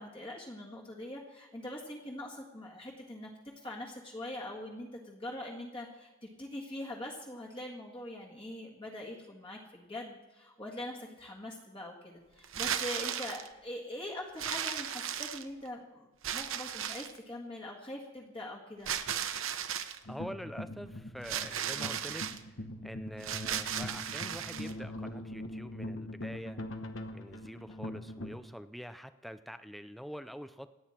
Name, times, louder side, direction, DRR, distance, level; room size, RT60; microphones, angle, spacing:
voice 1, 0.0-3.3 3.6-18.9, left 1 dB, 25° left, -3 dB, 1.8 m, -43 dB
sound 1, 12.4-13.5 14.4-15.7 16.2-17.2 18.9-20.0 21.2-22.4 23.2-24.7, right 9 dB, 70° right, 0.9 m, -36 dB
sound 2, 20.0-28.4, left 1 dB, 65° left, 1.2 m, -42 dB
voice 2, 20.1-26.8 27.1-30.7, equal, ahead, 11 dB, 0.5 m, -45 dB
27.5 x 9.3 x 4.4 m, 1.1 s
head